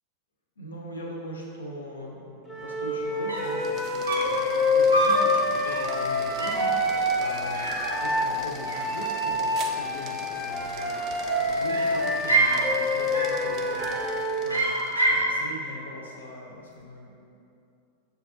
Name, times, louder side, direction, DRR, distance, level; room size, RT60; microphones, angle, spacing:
voice 1, 0.6-14.7 15.1-17.3, equal, 70° left, -2 dB, 0.6 m, -41 dB
Wind instrument woodwind instrument, 2.5-8.3 8.7-14.3, left 2 dB, 15° left, 0.8 m, -27 dB
sound 1, 3.0-3.1 3.3-3.6 4.1-4.4 4.9-5.3 5.6-5.9 6.4-6.7 7.5-8.4 8.6-9.4 10.6-11.2 11.7-12.6 13.1-13.4 13.7-14.1 14.5-15.3, right 2 dB, 85° right, 0.5 m, -27 dB
sound 2, 3.3-15.1, right 5 dB, 35° right, 0.3 m, -42 dB
6.3 x 2.3 x 2.7 m, 2.7 s
figure-of-eight pair, 90°, 0 cm